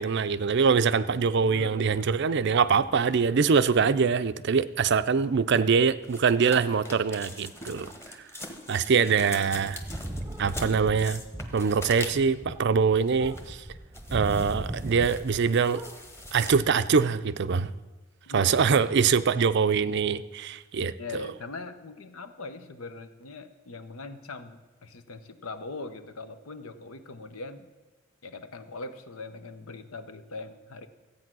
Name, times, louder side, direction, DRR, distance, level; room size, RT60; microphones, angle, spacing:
voice 1, 0.0-7.9 8.7-9.8 10.4-11.2 11.5-13.6 14.1-15.8 16.3-17.7 18.3-20.9, right 5 dB, 55° right, 0.5 m, -23 dB
voice 2, 1.4-2.6 5.3-5.6 9.0-9.8 18.3-19.1 21.0-27.7 28.2-30.9, left 3 dB, 85° left, 0.9 m, -42 dB
sound 1, 6.0-12.4 13.0-13.6 13.9-16.5, left 1 dB, 10° left, 1.1 m, -43 dB
sound 2, 9.5-15.5 15.7-16.6, right 1 dB, 10° right, 0.8 m, -38 dB
14.5 x 8.7 x 6.1 m
head